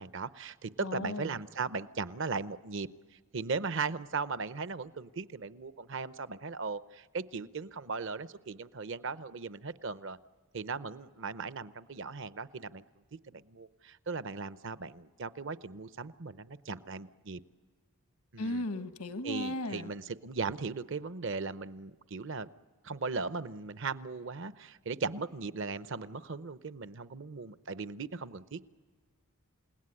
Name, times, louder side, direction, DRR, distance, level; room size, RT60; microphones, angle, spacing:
voice 1, 0.0-2.9 3.3-10.2 10.5-12.8 13.3-17.4 18.3-18.6 19.2-22.5 22.8-28.6, right 4 dB, 55° right, 15 dB, 0.7 m, -38 dB
voice 2, 0.8-1.4 18.4-19.9, left 1 dB, 90° left, 10 dB, 1.4 m, -36 dB
28.5 x 18.0 x 9.8 m, 1.5 s
head